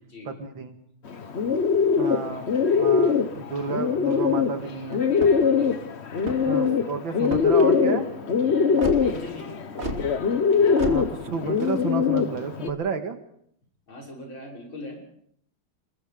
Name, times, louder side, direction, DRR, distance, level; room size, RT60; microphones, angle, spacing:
voice 1, 0.3-0.8 2.0-2.5 2.8-5.0 6.4-8.1 10.8-13.2, right 5 dB, 65° right, 7 dB, 2.5 m, -31 dB
Bird, 1.1-12.7, left 6 dB, 40° left, 1.1 m, -22 dB
sound 1, 5.1-5.6 6.1-6.6 7.2-7.7 8.8-9.0 9.8-10.0 10.8-11.0, right 2 dB, 30° right, 2.9 m, -31 dB
voice 2, 9.0-9.6 13.9-15.1, left 2 dB, 65° left, -1 dB, 7.1 m, -40 dB
28.0 x 22.0 x 5.2 m, 0.68 s
omnidirectional pair, 2.3 m